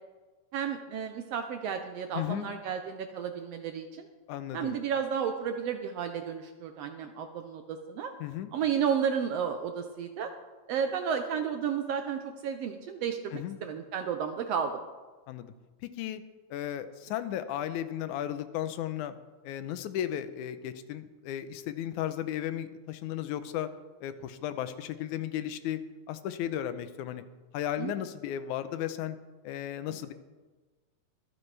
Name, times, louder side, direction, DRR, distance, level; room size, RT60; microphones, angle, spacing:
voice 1, 0.5-4.1 4.5-8.1 8.5-10.3 10.7-14.8 27.8-27.9 29.9-30.0, right 7 dB, 75° right, 6 dB, 1.5 m, -32 dB
voice 2, 2.1-2.5 4.3-4.8 8.2-8.5 13.3-13.6 15.3-15.5 15.8-16.2 16.5-19.2 19.4-23.7 24.0-25.8 26.1-27.2 27.5-29.2 29.4-30.1, left 11 dB, 85° left, 11 dB, 2.1 m, -35 dB
24.0 x 8.9 x 3.3 m, 1.3 s
omnidirectional pair, 3.5 m